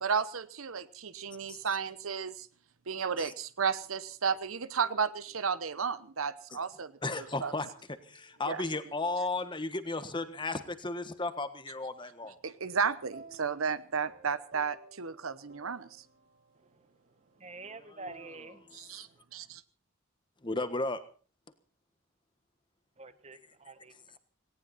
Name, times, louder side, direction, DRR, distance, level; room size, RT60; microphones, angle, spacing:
voice 1, 0.0-2.5 2.9-7.5 8.5-8.6 12.4-16.0 18.7-19.6, right 6 dB, 85° right, 1.0 m, -33 dB
sound 1, 3.6-6.3 7.3-10.6 13.1-19.2, right 3 dB, 55° right, 3.0 m, -57 dB
voice 2, 7.0-7.7 8.1-12.4 20.4-21.0, left 2 dB, 25° left, 1.4 m, -34 dB
voice 3, 17.4-18.9 23.0-24.2, right 3 dB, 30° right, 1.2 m, -48 dB
18.5 x 18.0 x 4.2 m
head